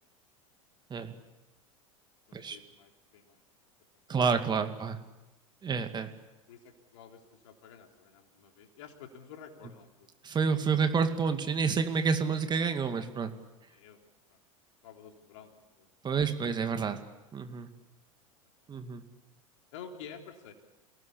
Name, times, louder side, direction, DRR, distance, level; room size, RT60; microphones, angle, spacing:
voice 1, 2.3-3.4 4.1-4.2 6.5-10.1 13.7-14.0 14.3-14.4 14.8-15.9 19.7-20.5, left 7 dB, 60° left, 4 dB, 3.5 m, -50 dB
voice 2, 4.1-5.0 5.6-6.1 10.2-13.3 16.0-17.0 17.3-17.7 18.7-19.0, right 5 dB, 25° right, 7 dB, 2.3 m, -29 dB
28.0 x 18.5 x 8.6 m, 1.0 s
figure-of-eight pair, 80°, 18 cm